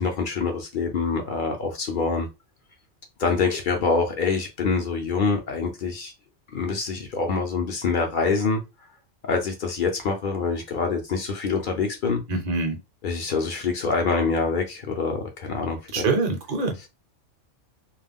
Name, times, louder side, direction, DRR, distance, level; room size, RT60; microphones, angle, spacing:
voice 1, 0.0-2.3 3.2-6.1 6.5-8.6 9.3-12.2 13.0-16.0, left 4 dB, 55° left, 0.6 m, -25 dB
voice 2, 12.3-12.8 15.9-16.9, right 3 dB, 45° right, 0.6 m, -25 dB
2.4 x 2.1 x 3.4 m
omnidirectional pair, 1.3 m